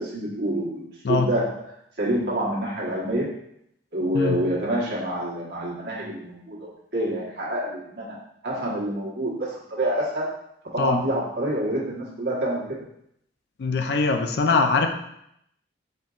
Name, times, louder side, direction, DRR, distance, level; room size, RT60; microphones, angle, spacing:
voice 1, 0.0-1.7 2.0-3.3 3.9-8.1 8.4-10.3 10.7-12.6, right 1 dB, 60° right, -5 dB, 1.2 m, -27 dB
voice 2, 13.6-14.9, left 4 dB, 60° left, 5 dB, 0.4 m, -22 dB
4.3 x 3.8 x 2.4 m, 0.75 s
head